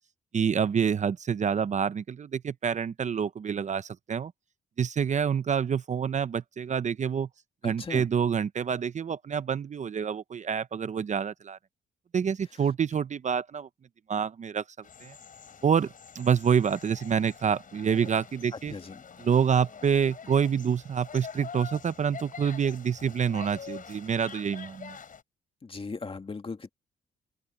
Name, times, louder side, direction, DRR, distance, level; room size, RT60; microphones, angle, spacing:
voice 1, 0.3-4.3 4.8-7.3 7.6-11.6 12.1-13.7 14.1-14.6 15.0-15.2 15.6-18.7 19.2-25.0, right 7 dB, 45° right, 0.7 m, -27 dB
voice 2, 7.6-8.1 18.7-19.0 25.6-26.7, left 4 dB, 30° left, 2.1 m, -38 dB
sound 1, 14.8-25.2, left 6 dB, 50° left, 6.7 m, -46 dB
open air
cardioid pair, 85°, 18 cm